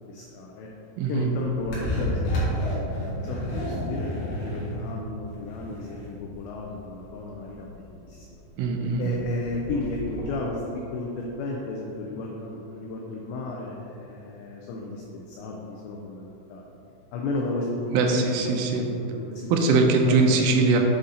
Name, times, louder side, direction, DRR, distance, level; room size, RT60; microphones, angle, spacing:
voice 1, 0.1-0.7 1.1-8.4 9.0-16.6 17.1-20.4, left 2 dB, 85° left, -1 dB, 2.5 m, -34 dB
voice 2, 1.0-1.3 8.6-9.2 17.9-18.9 19.5-20.8, right 3 dB, 85° right, 2 dB, 3.1 m, -22 dB
sound 1, 1.3-10.4, left 1 dB, 70° left, 1.9 m, -31 dB
8.2 x 3.7 x 4.0 m, 2.8 s
omnidirectional pair, 5.7 m